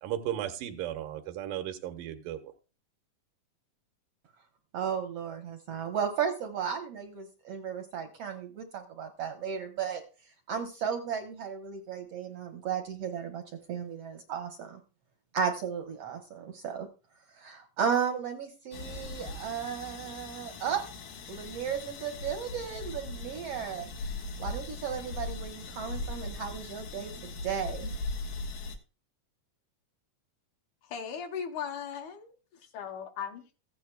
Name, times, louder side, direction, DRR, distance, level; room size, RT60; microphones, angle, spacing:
voice 1, 0.0-2.5, right 11 dB, 85° right, 2.5 m, -35 dB
voice 2, 4.7-10.0 10.5-13.4 13.7-14.8 15.3-16.9 17.3-20.8 21.3-23.9 24.4-27.9, right 7 dB, 70° right, 1.5 m, -34 dB
sound 1, 18.7-28.8, left 2 dB, 85° left, 3.0 m, -39 dB
voice 3, 30.8-33.4, left 7 dB, 70° left, 2.1 m, -38 dB
15.5 x 9.3 x 2.2 m
omnidirectional pair, 3.8 m